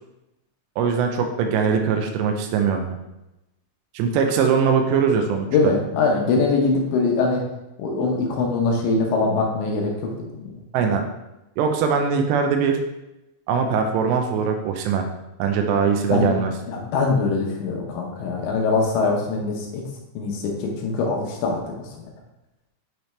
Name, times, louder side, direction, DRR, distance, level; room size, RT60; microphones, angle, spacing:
voice 1, 0.8-3.0 3.9-5.7 10.7-11.0 11.6-12.8 13.5-15.1 15.4-16.5, right 6 dB, 85° right, 4 dB, 2.5 m, -21 dB
voice 2, 5.5-7.4 7.8-10.5 16.1-16.3 16.7-19.8 20.2-21.7, left 3 dB, 75° left, 0 dB, 2.9 m, -22 dB
8.9 x 3.4 x 3.1 m, 0.94 s
omnidirectional pair, 5.6 m